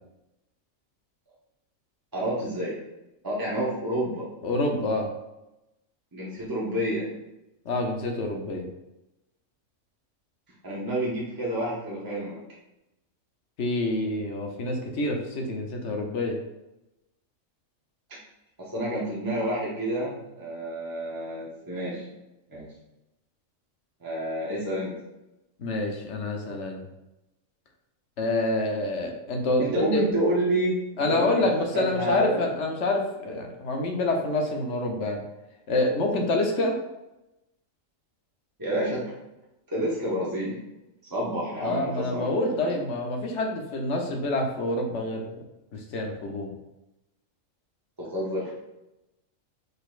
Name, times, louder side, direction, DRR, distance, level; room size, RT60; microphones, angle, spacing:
voice 1, 2.1-2.8 3.2-4.3 6.1-7.1 10.6-12.4 18.6-22.1 22.5-22.7 24.0-25.0 29.6-32.4 38.6-39.1 39.7-40.6 41.1-42.8 48.0-48.5, right 1 dB, 20° right, -6 dB, 0.8 m, -29 dB
voice 2, 4.4-5.1 7.6-8.7 13.6-16.4 25.6-26.8 28.2-30.0 31.0-35.2 35.7-36.8 41.6-45.4 45.7-46.5, left 2 dB, 65° left, 2 dB, 1.1 m, -27 dB
5.3 x 4.1 x 2.4 m, 0.94 s
omnidirectional pair, 1.4 m